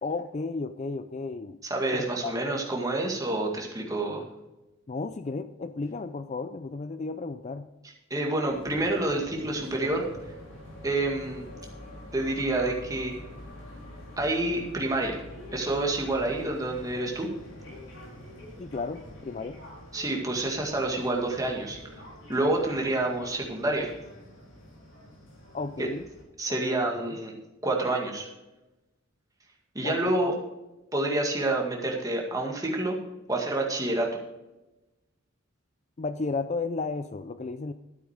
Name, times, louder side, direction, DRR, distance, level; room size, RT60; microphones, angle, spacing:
voice 1, 0.0-1.6 2.2-2.3 4.9-7.7 18.6-19.6 25.5-26.1 26.5-27.2 29.8-30.2 36.0-37.7, left 3 dB, 35° left, 11 dB, 0.4 m, -33 dB
voice 2, 1.6-4.2 8.1-10.0 10.8-11.4 12.1-13.1 14.2-15.2 15.5-17.3 19.9-21.8 22.3-23.9 25.8-25.9 26.4-27.3 27.6-28.3 29.7-30.4 30.9-33.0 33.3-34.1, right 2 dB, 15° right, 0 dB, 2.0 m, -28 dB
sound 1, 8.5-26.2, left 1 dB, 65° left, 4.7 m, -46 dB
12.0 x 9.1 x 5.0 m, 1.0 s
head